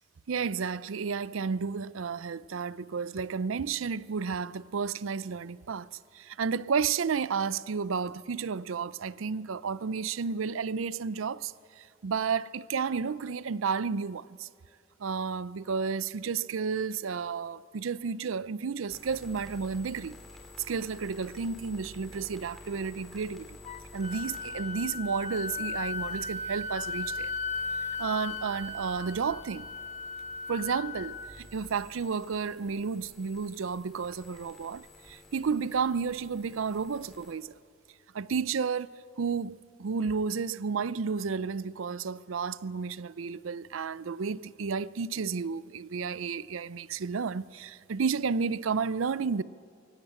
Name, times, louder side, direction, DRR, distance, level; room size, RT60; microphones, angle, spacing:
voice 1, 0.3-5.9 6.1-14.5 15.0-20.2 20.7-23.6 23.9-27.3 28.0-29.7 30.5-37.5 38.1-49.4, right 5 dB, 80° right, 0.5 m, -32 dB
sound 1, 18.9-37.3, left 2 dB, ahead, 3.9 m, -51 dB
Wind instrument woodwind instrument, 23.7-31.4, left 4 dB, 35° left, 0.9 m, -36 dB
24.0 x 17.0 x 8.8 m
head